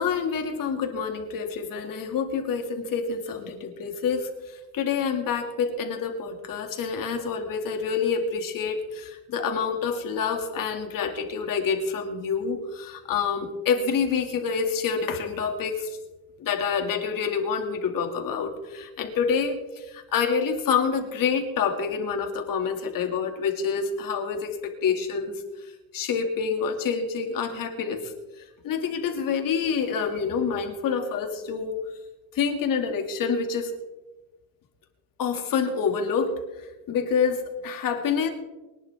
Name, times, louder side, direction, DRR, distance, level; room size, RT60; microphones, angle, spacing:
voice 1, 0.0-16.0 16.4-25.4 25.9-28.1 28.6-31.8 32.3-33.7 35.2-38.3, left 6 dB, 65° left, 4 dB, 2.4 m, -27 dB
24.5 x 10.5 x 3.6 m, 1.1 s
cardioid pair, 140°, 36 cm